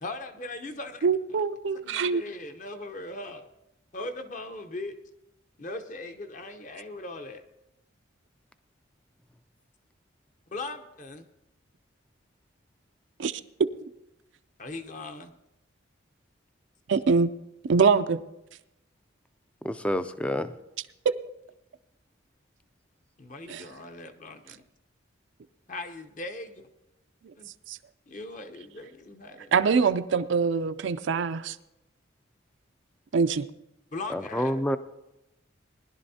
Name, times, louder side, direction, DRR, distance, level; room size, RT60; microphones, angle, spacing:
voice 1, 0.0-1.0 1.7-3.5 3.9-5.0 5.6-7.4 10.5-11.2 14.6-15.3 23.2-24.6 25.7-26.7 27.4-27.5 28.1-29.5 33.9-34.6, left 2 dB, 40° left, 7 dB, 0.8 m, -39 dB
voice 2, 1.0-2.2 13.2-13.4 16.9-17.3 17.7-18.2 23.5-23.6 27.7-27.8 29.5-31.6 33.1-33.5, right 5 dB, 65° right, 11 dB, 0.4 m, -24 dB
voice 3, 19.6-20.5 34.1-34.8, equal, 5° left, 12 dB, 0.3 m, -28 dB
20.0 x 11.5 x 2.8 m, 0.90 s
head